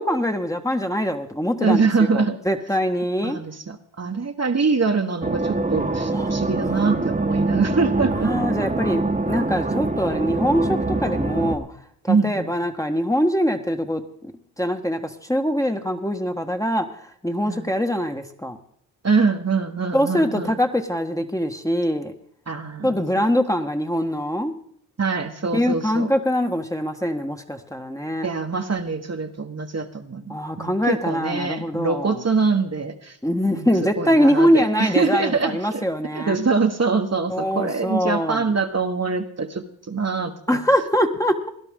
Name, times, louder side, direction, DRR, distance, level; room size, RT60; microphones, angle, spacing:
voice 1, 0.0-3.4 6.1-6.3 8.1-11.7 12.0-14.3 14.6-18.6 19.9-22.1 22.8-24.5 25.5-28.3 30.3-32.2 33.2-36.3 37.3-38.5 40.5-41.5, equal, 5° left, 5 dB, 1.4 m, -23 dB
voice 2, 1.6-2.4 3.2-8.3 12.1-12.5 17.5-17.7 19.0-20.6 22.5-23.0 25.0-26.1 28.2-33.2 33.5-33.7 34.0-35.9 36.1-40.6, right 4 dB, 35° right, 5 dB, 1.4 m, -24 dB
sound 1, 5.2-11.6, right 2 dB, 15° right, 1.4 m, -24 dB
17.5 x 11.5 x 3.7 m, 0.64 s
supercardioid pair, 40°, 44 cm